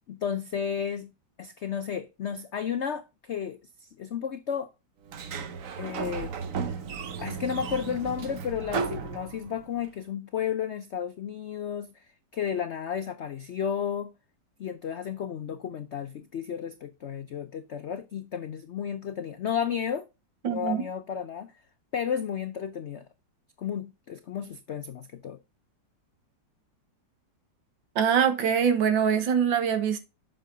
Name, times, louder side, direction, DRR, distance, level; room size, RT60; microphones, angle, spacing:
voice 1, 0.1-1.1 1.4-4.7 5.8-6.3 6.6-6.8 7.2-12.1 12.3-14.1 14.6-20.1 20.4-21.5 21.9-23.0 23.6-25.4, left 8 dB, 85° left, 0.6 m, -33 dB
Sliding door, 5.1-9.8, right 6 dB, 55° right, 1.1 m, -34 dB
voice 2, 20.4-20.8 28.0-30.0, right 7 dB, 85° right, 2.0 m, -23 dB
7.7 x 6.3 x 3.8 m
omnidirectional pair, 2.0 m